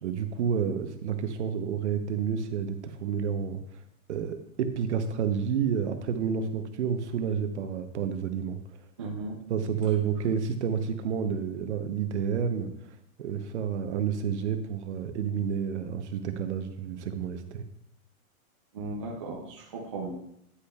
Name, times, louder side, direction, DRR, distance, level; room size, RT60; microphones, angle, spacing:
voice 1, 0.0-3.6 4.1-8.6 9.5-12.7 13.2-17.6, right 7 dB, 50° right, 8 dB, 0.9 m, -30 dB
voice 2, 9.0-9.4 18.7-20.1, right 3 dB, 20° right, -1 dB, 0.5 m, -36 dB
9.8 x 8.4 x 2.3 m, 0.76 s
hypercardioid pair, 170°, 43 cm